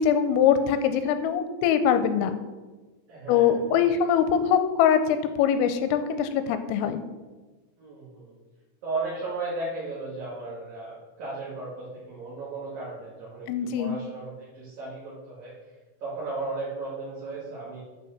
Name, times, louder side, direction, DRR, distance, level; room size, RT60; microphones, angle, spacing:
voice 1, 0.0-2.4 3.3-7.0 13.5-14.0, left 8 dB, 85° left, 9 dB, 3.2 m, -23 dB
voice 2, 3.1-3.9 7.8-8.3 8.8-15.5 16.0-17.8, right 3 dB, 55° right, -8 dB, 3.3 m, -35 dB
8.6 x 5.5 x 6.6 m, 1.3 s
omnidirectional pair, 5.9 m